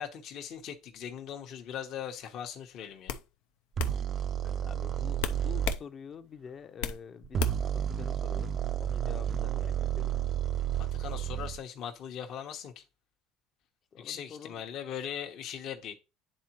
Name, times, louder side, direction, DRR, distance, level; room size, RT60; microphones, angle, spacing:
voice 1, 0.0-3.2 10.9-12.8 14.0-15.9, left 9 dB, 55° left, 1.1 m, -40 dB
sound 1, 2.3-2.5 3.1-3.3 3.8-4.0 5.2-5.8 6.2-7.0 7.4-7.7, left 9 dB, 80° left, 0.5 m, -34 dB
sound 2, 3.8-5.8 7.2-11.6, right 10 dB, 40° right, 0.4 m, -31 dB
voice 2, 4.4-10.2 13.9-14.6, left 7 dB, 40° left, 0.7 m, -47 dB
10.0 x 3.8 x 3.0 m
supercardioid pair, 105°, 0 cm